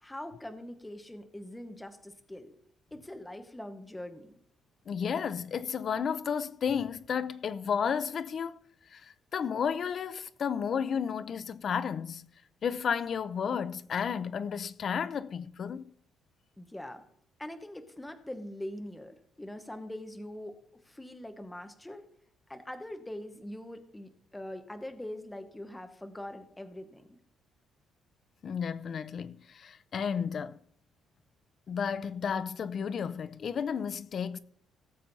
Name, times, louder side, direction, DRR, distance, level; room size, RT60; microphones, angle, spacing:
voice 1, 0.0-2.5 2.9-4.3 16.6-17.0 17.4-20.6 20.8-22.1 22.5-27.2, left 1 dB, 5° left, 1.0 m, -43 dB
voice 2, 4.9-8.6 8.9-12.3 12.6-15.8 28.4-30.6 31.7-34.4, left 7 dB, 40° left, 0.5 m, -32 dB
17.5 x 7.2 x 4.1 m
cardioid pair, 165°, 0 cm